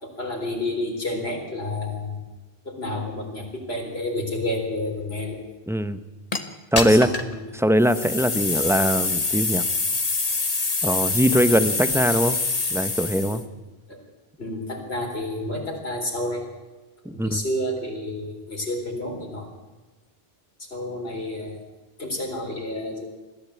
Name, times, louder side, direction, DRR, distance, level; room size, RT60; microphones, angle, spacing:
voice 1, 0.0-2.2 2.6-5.4 6.8-7.5 8.4-8.5 13.3-13.5 13.9-14.0 14.4-16.5 17.0-19.5 20.6-21.6 22.0-23.0, left 1 dB, 70° left, 1 dB, 4.3 m, -30 dB
voice 2, 5.7-6.0 6.7-7.1 7.5-9.6 10.8-12.4 12.7-13.4 17.0-17.4, equal, 5° right, 12 dB, 0.8 m, -21 dB
sound 1, 6.3-6.4 6.8-7.3 7.8-13.4, left 3 dB, 35° left, 1.4 m, -25 dB
21.5 x 14.5 x 8.5 m, 1.2 s
omnidirectional pair, 1.1 m